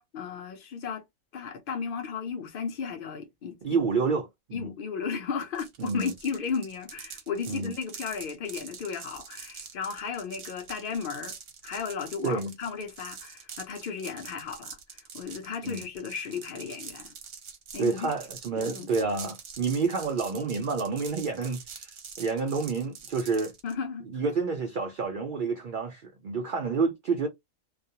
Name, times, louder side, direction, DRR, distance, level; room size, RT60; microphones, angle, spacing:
voice 1, 0.1-1.0 1.3-3.8 4.5-11.3 11.6-17.1 17.7-18.1 18.6-18.9 23.6-24.1, left 6 dB, 55° left, 0.7 m, -35 dB
voice 2, 3.6-4.7 5.8-6.1 7.5-7.7 12.2-12.5 15.6-15.8 17.8-21.9 22.2-23.5 24.1-27.3, right 4 dB, 85° right, 0.4 m, -29 dB
sound 1, 5.5-23.7, right 6 dB, 55° right, 0.8 m, -45 dB
2.3 x 2.1 x 2.7 m
omnidirectional pair, 1.4 m